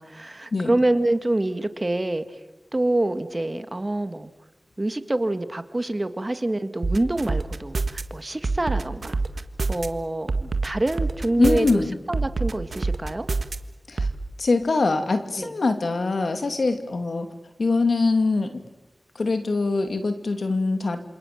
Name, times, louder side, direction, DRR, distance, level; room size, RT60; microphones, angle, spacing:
voice 1, 0.0-2.2 2.7-4.3 4.8-9.2 9.7-13.3 15.4-15.6, right 1 dB, 35° right, 10 dB, 2.0 m, -26 dB
sound 1, 6.8-8.0 8.4-9.9 10.3-11.7 12.1-13.6 14.0-14.1, right 3 dB, 75° right, 1.5 m, -25 dB
voice 2, 11.4-12.0 13.9-14.1 14.4-17.3 17.6-18.5 19.2-21.0, left 3 dB, 80° left, 7 dB, 2.5 m, -23 dB
27.5 x 27.5 x 7.5 m, 1.0 s
wide cardioid pair, 50°, 0 cm